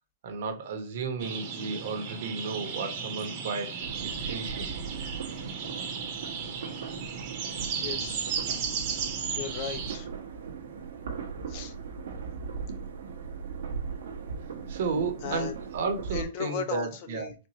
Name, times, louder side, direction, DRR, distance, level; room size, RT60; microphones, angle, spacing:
voice 1, 0.2-4.7 14.7-17.3, right 4 dB, 65° right, 1.3 m, -33 dB
sound 1, 1.2-10.0, right 6 dB, 40° right, 1.2 m, -35 dB
sound 2, 3.8-16.2, right 5 dB, 80° right, 1.2 m, -38 dB
voice 2, 7.8-8.3 9.4-10.1 11.5-11.7 15.2-15.5 16.1-17.3, left 7 dB, 45° left, 0.7 m, -35 dB
4.4 x 2.6 x 2.8 m
hypercardioid pair, 145°, 0 cm